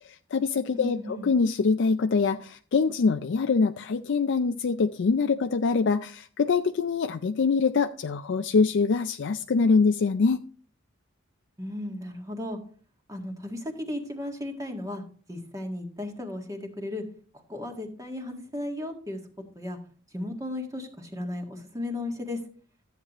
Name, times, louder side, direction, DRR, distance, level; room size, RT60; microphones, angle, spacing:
voice 1, 0.0-10.4, left 4 dB, 60° left, 8 dB, 0.4 m, -24 dB
voice 2, 0.7-1.3 11.6-12.6 13.1-15.0 15.3-17.0 17.3-19.2 19.5-19.8 20.1-22.4, left 1 dB, 15° right, 3 dB, 1.7 m, -35 dB
13.5 x 8.1 x 3.0 m, 0.43 s
head